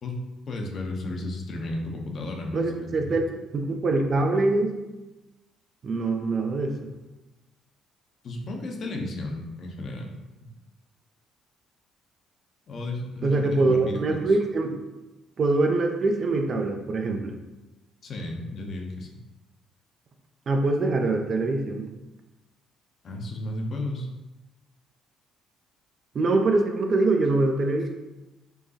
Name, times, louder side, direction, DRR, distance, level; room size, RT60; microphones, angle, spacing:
voice 1, 0.0-2.9 8.2-10.1 12.7-14.2 18.0-19.2 23.0-24.1, left 2 dB, 55° left, 2 dB, 0.6 m, -33 dB
voice 2, 2.5-4.8 5.8-6.9 13.2-14.8 15.4-17.3 20.5-21.9 26.1-27.9, right 2 dB, 50° right, 3 dB, 0.5 m, -24 dB
4.6 x 2.2 x 2.8 m, 1.1 s
hypercardioid pair, 50°, 0 cm